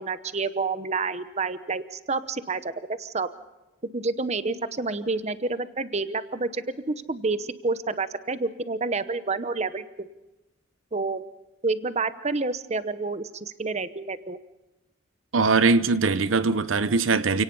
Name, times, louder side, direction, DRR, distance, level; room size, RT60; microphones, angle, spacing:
voice 1, 0.0-3.3 3.9-10.1 10.9-11.2 11.6-14.4, right 3 dB, 35° right, 0.9 m, -29 dB
voice 2, 15.3-17.4, right 4 dB, 80° right, 0.8 m, -21 dB
28.5 x 18.0 x 5.5 m
head